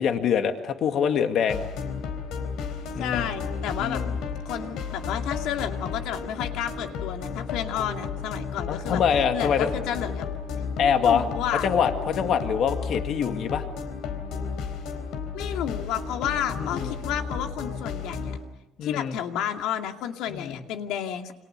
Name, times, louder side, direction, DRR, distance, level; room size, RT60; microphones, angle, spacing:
voice 1, 0.0-1.6 3.0-3.3 3.8-4.1 8.7-9.7 10.8-11.3 11.6-13.6 16.6-16.9 18.8-19.2 20.3-20.6, left 7 dB, 45° left, 7 dB, 2.0 m, -24 dB
sound 1, 1.5-18.4, left 5 dB, 70° left, 4.1 m, -33 dB
voice 2, 3.0-4.0 4.4-9.0 9.3-10.3 10.8-11.7 15.3-18.4 18.8-21.3, left 10 dB, 85° left, 5 dB, 2.5 m, -31 dB
29.0 x 26.5 x 6.8 m, 0.91 s
cardioid pair, 175°, 0 cm